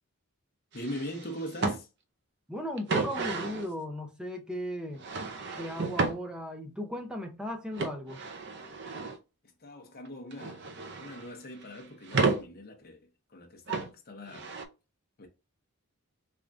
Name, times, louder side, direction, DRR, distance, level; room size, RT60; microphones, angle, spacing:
voice 1, 0.7-1.9 9.6-10.7 11.0-13.0 13.3-14.5 15.2-15.3, equal, 40° left, 0.7 m, -41 dB
sound 1, 0.7-1.8 2.8-3.7 5.0-6.2 7.7-9.2 10.0-11.3 11.6-12.4 13.7-13.9 14.3-14.6, right 3 dB, 50° right, 0.5 m, -32 dB
voice 2, 2.5-5.0 5.6-8.2, equal, 5° right, 0.6 m, -36 dB
3.6 x 3.5 x 2.4 m
head